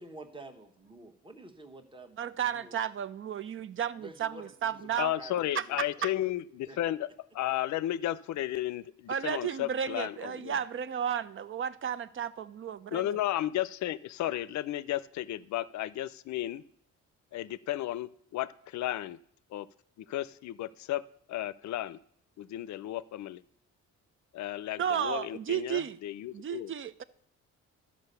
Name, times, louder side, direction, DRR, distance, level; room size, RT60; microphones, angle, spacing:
voice 1, 0.0-2.2 2.5-2.8 4.0-5.3 5.7-6.1 6.7-6.9, right 2 dB, 15° right, 1.2 m, -49 dB
voice 2, 2.2-5.1 5.5-6.1 9.1-13.2 24.8-26.0 26.3-27.0, right 8 dB, 45° right, 0.5 m, -33 dB
voice 3, 5.0-10.6 12.9-16.6 17.3-19.2 19.5-19.7 20.0-21.0 21.3-22.0 22.4-23.4 24.3-26.7, left 13 dB, 65° left, 0.5 m, -33 dB
11.5 x 5.2 x 6.7 m
cardioid pair, 90°, 30 cm